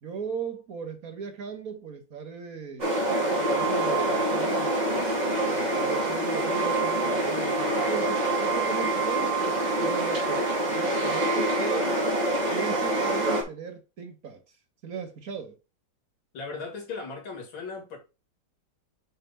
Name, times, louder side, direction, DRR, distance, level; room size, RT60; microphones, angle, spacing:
voice 1, 0.0-3.0 3.4-4.7 5.4-11.9 12.5-14.4 14.8-15.6, right 6 dB, 50° right, 1.4 m, -38 dB
sound 1, 2.8-13.4, right 2 dB, 20° right, 1.8 m, -26 dB
voice 2, 16.3-18.0, left 4 dB, 80° left, 3.0 m, -37 dB
6.7 x 3.4 x 5.3 m
omnidirectional pair, 2.1 m